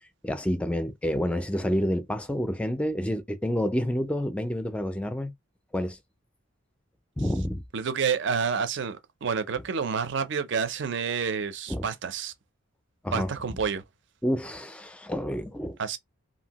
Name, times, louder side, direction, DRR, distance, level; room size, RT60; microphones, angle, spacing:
voice 1, 0.2-5.3 5.7-6.0 7.2-7.6 11.7-11.8 13.0-13.3 14.2-15.8, equal, 5° left, 0.3 m, -28 dB
voice 2, 7.7-12.3 13.1-13.8 15.8-16.0, right 6 dB, 60° right, 0.5 m, -29 dB
2.8 x 2.6 x 2.8 m
head